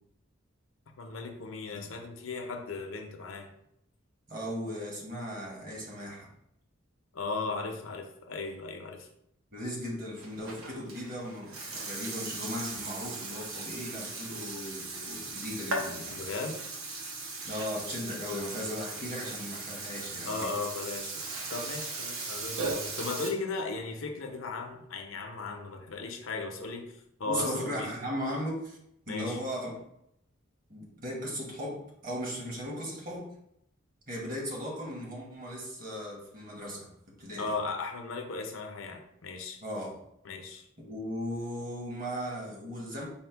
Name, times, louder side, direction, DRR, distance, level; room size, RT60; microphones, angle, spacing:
voice 1, 1.0-3.5 7.1-9.1 16.1-16.6 20.2-21.2 21.5-27.9 29.1-29.4 37.4-39.6 40.2-40.7, left 3 dB, 70° left, 4 dB, 0.6 m, -36 dB
voice 2, 4.3-6.3 9.5-16.2 17.4-20.5 27.3-28.8 29.1-29.8 30.7-33.3 34.1-37.5 39.6-40.0 40.8-43.0, equal, 45° right, -2 dB, 1.2 m, -37 dB
Burping eructation, 10.1-23.3, right 3 dB, 80° right, 0.8 m, -38 dB
4.3 x 2.1 x 4.4 m, 0.75 s
head